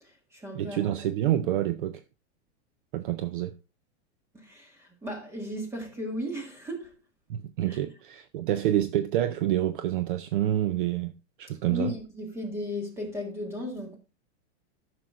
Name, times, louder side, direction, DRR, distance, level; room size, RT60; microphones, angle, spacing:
voice 1, 0.0-0.9 4.3-7.0 7.7-7.8 11.7-14.0, left 1 dB, 5° right, 1.6 m, -36 dB
voice 2, 0.5-2.0 2.9-3.6 7.3-11.9, right 12 dB, 50° right, 0.5 m, -28 dB
13.0 x 6.1 x 2.4 m
supercardioid pair, 165°, 35 cm